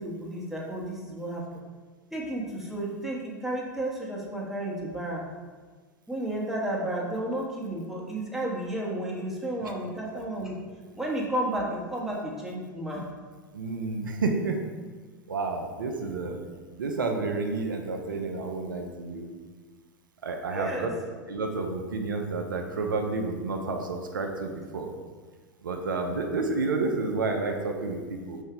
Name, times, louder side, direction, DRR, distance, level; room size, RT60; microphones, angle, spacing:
voice 1, 0.0-1.4 2.1-5.2 6.1-10.6 11.0-13.0 20.5-20.9, right 1 dB, 5° right, -4 dB, 1.2 m, -32 dB
voice 2, 13.5-14.7 15.3-16.5 16.8-19.3 20.2-20.9 21.3-24.9 25.6-28.4, right 3 dB, 85° right, 3 dB, 0.5 m, -30 dB
5.4 x 2.7 x 3.6 m, 1.4 s
hypercardioid pair, 90°, 11 cm